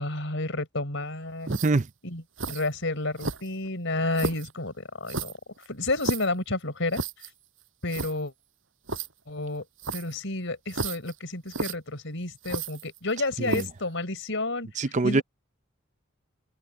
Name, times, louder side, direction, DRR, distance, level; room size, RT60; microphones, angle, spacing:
voice 1, 0.0-1.5 2.0-2.2 2.5-5.3 5.7-7.0 7.8-8.3 9.3-9.6 9.9-14.7 15.0-15.2, left 2 dB, 65° left, 4.7 m, -30 dB
sound 1, 1.4-1.9 2.4-2.7 3.2-3.7 4.1-4.5 5.1-6.3 6.9-7.3 7.6-7.7 7.9-8.1 8.9-9.1 9.8-10.2 10.7-11.1 11.5-11.7 12.4-13.1 13.4-13.8, right 3 dB, 70° right, 5.2 m, -32 dB
voice 2, 1.5-1.9 13.4-13.7 14.8-15.2, right 3 dB, 35° right, 0.6 m, -24 dB
open air
head